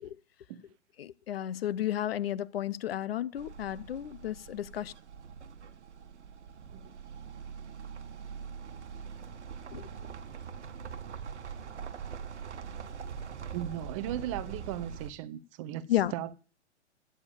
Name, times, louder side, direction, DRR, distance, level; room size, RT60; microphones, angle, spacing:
voice 1, 1.0-4.9 9.7-9.8 15.9-16.1, left 12 dB, 60° left, 0.6 m, -32 dB
sound 1, 3.4-15.1, right 6 dB, 75° right, 1.2 m, -43 dB
voice 2, 13.5-16.3, right 11 dB, 30° right, 0.6 m, -37 dB
8.6 x 6.9 x 8.4 m
hypercardioid pair, 125°, 35 cm